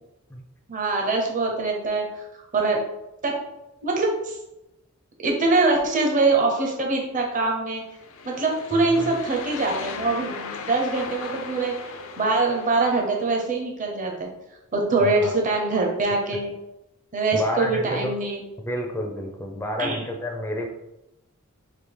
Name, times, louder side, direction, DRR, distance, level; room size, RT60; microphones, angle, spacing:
voice 1, 0.7-2.1 2.3-2.8 3.2-3.4 3.8-4.4 5.2-7.8 8.2-11.8 12.2-14.3 14.7-16.5 17.1-18.4 19.8-20.1, right 3 dB, 40° right, 0 dB, 0.8 m, -23 dB
sound 1, 7.9-13.3, left 5 dB, 65° left, 0.4 m, -37 dB
voice 2, 8.7-9.1 15.0-15.3 17.3-18.1 18.6-20.7, equal, 10° left, 2 dB, 0.4 m, -30 dB
3.5 x 2.8 x 4.6 m, 0.92 s
head